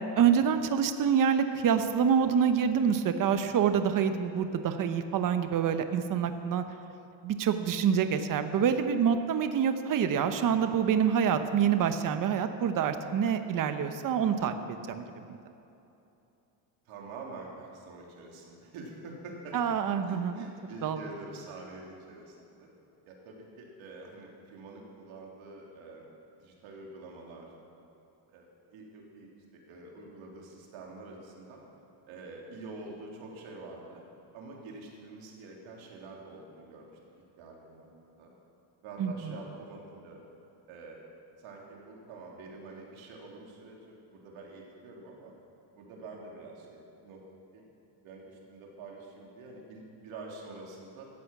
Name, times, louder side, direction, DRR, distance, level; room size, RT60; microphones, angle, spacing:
voice 1, 0.2-6.6 7.2-15.4 19.5-20.5 20.8-21.0 39.0-39.1, right 7 dB, 45° right, 8 dB, 1.0 m, -26 dB
voice 2, 16.9-19.8 20.0-22.7 23.1-26.1 26.4-27.5 28.3-31.6 32.1-34.0 34.3-36.9 37.4-37.9 38.2-38.3 38.8-40.3 40.7-41.0 41.4-45.3 45.7-47.2 47.5-47.7 48.0-51.1, right 3 dB, 85° right, -1 dB, 3.6 m, -46 dB
16.5 x 14.0 x 6.0 m, 2.9 s
cardioid pair, 165°, 47 cm